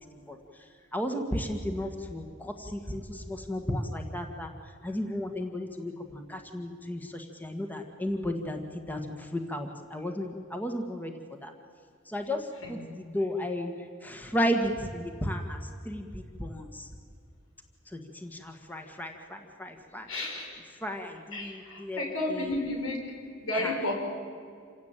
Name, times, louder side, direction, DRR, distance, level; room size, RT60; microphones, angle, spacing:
voice 1, 0.1-11.5 12.0-16.9 17.9-20.1 20.7-22.0 22.3-22.6 23.5-23.8, equal, 10° left, 4 dB, 1.7 m, -34 dB
voice 2, 20.1-20.6 21.3-23.9, left 1 dB, 85° left, 2 dB, 6.0 m, -32 dB
27.0 x 17.0 x 9.0 m, 2.3 s
head